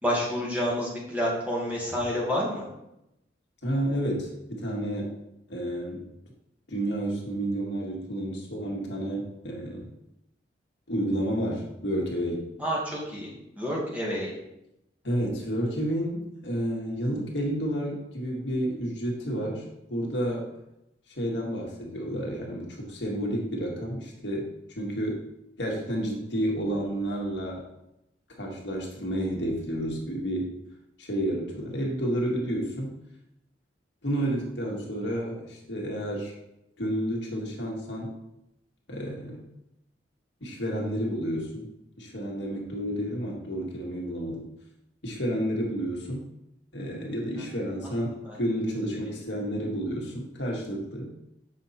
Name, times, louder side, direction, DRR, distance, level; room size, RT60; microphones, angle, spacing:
voice 1, 0.0-2.6 12.6-13.3 13.6-14.3 48.2-48.4 49.0-49.1, equal, 10° right, -4 dB, 2.2 m, -29 dB
voice 2, 3.6-5.2 5.5-6.1 6.7-9.9 10.9-12.5 15.0-19.6 19.9-20.5 21.1-24.5 24.8-25.2 25.6-27.6 28.4-30.5 31.0-32.9 34.0-36.3 36.8-38.1 38.9-39.4 40.4-41.7 42.0-44.5 45.0-46.3 46.7-51.1, equal, 75° left, -1 dB, 1.8 m, -30 dB
7.4 x 5.5 x 4.3 m, 0.85 s
head